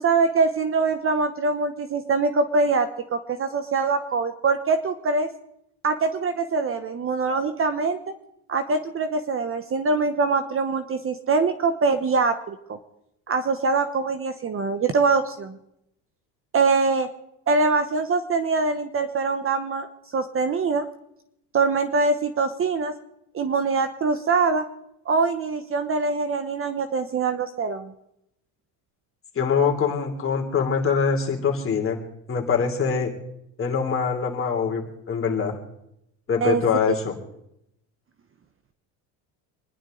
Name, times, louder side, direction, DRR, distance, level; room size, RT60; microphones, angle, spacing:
voice 1, 0.0-5.3 5.8-8.1 8.5-12.8 13.3-15.6 16.5-17.1 17.5-19.9 20.1-20.9 21.5-22.9 23.3-24.6 25.1-27.9 36.4-36.6 36.9-37.0, right 4 dB, 30° right, 10 dB, 1.0 m, -23 dB
voice 2, 29.3-32.0 32.3-33.1 33.6-35.6 36.3-37.2, left 6 dB, 30° left, 1 dB, 3.1 m, -23 dB
26.5 x 11.0 x 3.8 m, 0.80 s
cardioid pair, 120°, 42 cm